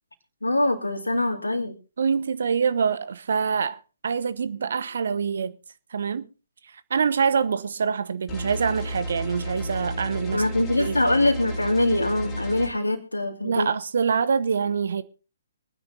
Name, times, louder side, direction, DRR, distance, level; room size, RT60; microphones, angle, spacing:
voice 1, 0.4-1.8 10.3-13.7, left 1 dB, 80° left, 2.3 m, -23 dB
voice 2, 2.0-5.6 5.9-6.3 6.7-10.4 10.8-11.0 12.8-12.9 13.4-15.0, right 6 dB, 55° right, 0.8 m, -25 dB
sound 1, 8.3-12.7, equal, 10° left, 3.6 m, -32 dB
25.0 x 9.7 x 2.8 m
figure-of-eight pair, 130°, 0 cm